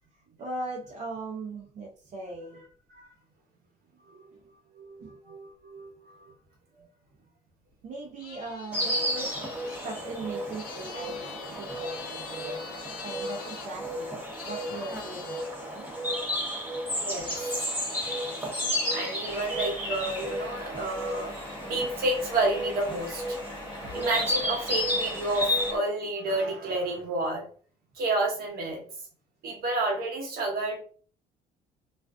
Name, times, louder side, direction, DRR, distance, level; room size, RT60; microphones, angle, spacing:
voice 1, 0.4-2.7 5.0-5.1 7.8-9.3 9.7-14.2 14.5-15.9 17.2-17.4 18.0-18.1 23.8-24.0, right 2 dB, 45° right, -2 dB, 0.6 m, -39 dB
voice 2, 4.7-6.3 6.8-6.9 16.9-17.3 18.2-18.3 18.9-23.4 23.9-27.5 27.9-28.9 29.4-30.8, right 2 dB, 65° right, 0 dB, 1.0 m, -30 dB
sound 1, 8.2-13.7 14.3-15.5 17.2-18.7, left 7 dB, 65° left, 0.5 m, -44 dB
Insect, 8.7-25.7, equal, 10° right, 1.0 m, -32 dB
sound 2, 19.2-25.8, left 2 dB, 25° left, 0.7 m, -43 dB
2.4 x 2.3 x 2.3 m, 0.43 s
cardioid pair, 110°, 17 cm